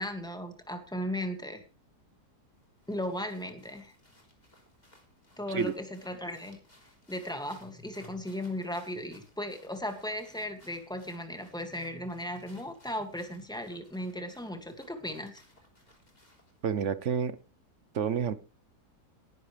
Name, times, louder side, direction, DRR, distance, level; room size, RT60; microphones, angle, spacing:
voice 1, 0.0-1.6 2.9-4.0 5.4-6.6 7.1-15.4, left 1 dB, ahead, 2.1 m, -36 dB
sound 1, 2.5-16.6, left 1 dB, 25° left, 3.9 m, -62 dB
voice 2, 16.6-17.4 17.9-18.3, right 7 dB, 55° right, 1.0 m, -29 dB
19.5 x 10.5 x 3.4 m
omnidirectional pair, 1.8 m